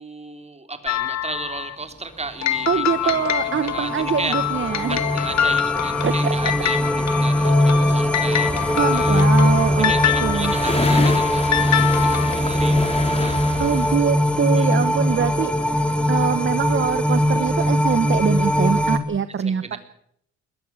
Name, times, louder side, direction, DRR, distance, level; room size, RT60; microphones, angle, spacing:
voice 1, 0.0-4.4 4.9-9.3 9.8-13.4 14.6-14.7 19.4-19.8, right 3 dB, 20° right, 8 dB, 3.3 m, -34 dB
sound 1, 0.9-1.8 2.4-12.4, left 11 dB, 65° left, 1.6 m, -25 dB
voice 2, 2.7-5.0 6.0-6.5 8.8-9.9 10.2-10.5 13.6-15.8 16.1-19.8, right 7 dB, 40° right, 13 dB, 1.1 m, -23 dB
sound 2, 2.8-19.0, left 1 dB, 5° left, 2.5 m, -21 dB
sound 3, 8.5-14.0, left 2 dB, 20° left, 3.3 m, -28 dB
21.5 x 13.0 x 9.4 m, 0.70 s
cardioid pair, 90°, 30 cm